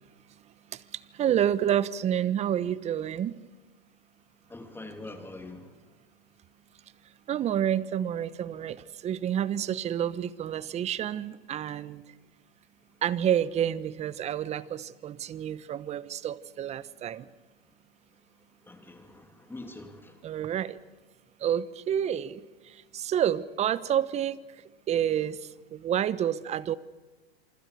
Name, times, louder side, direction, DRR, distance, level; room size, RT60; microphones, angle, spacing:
voice 1, 0.7-3.4 7.3-12.0 13.0-17.3 20.2-20.8 21.4-24.4 24.9-26.8, right 10 dB, 20° right, 18 dB, 1.0 m, -29 dB
voice 2, 4.5-5.8 18.6-20.2, left 2 dB, 5° left, 6 dB, 2.7 m, -44 dB
27.5 x 25.0 x 6.7 m, 1.2 s
hypercardioid pair, 130°, 30 cm